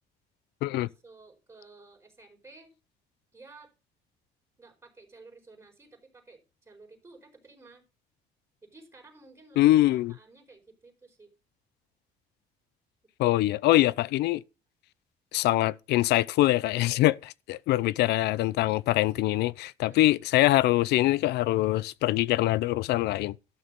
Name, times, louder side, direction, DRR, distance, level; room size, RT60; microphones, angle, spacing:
voice 1, 0.7-2.7 3.3-3.7 4.6-7.8 8.6-11.3 13.3-13.6 19.8-20.1, right 3 dB, 15° right, 4.6 m, -53 dB
voice 2, 9.6-10.1 13.2-14.4 15.3-23.3, left 16 dB, 80° left, 0.5 m, -24 dB
12.5 x 6.5 x 5.2 m
cardioid pair, 110°, 17 cm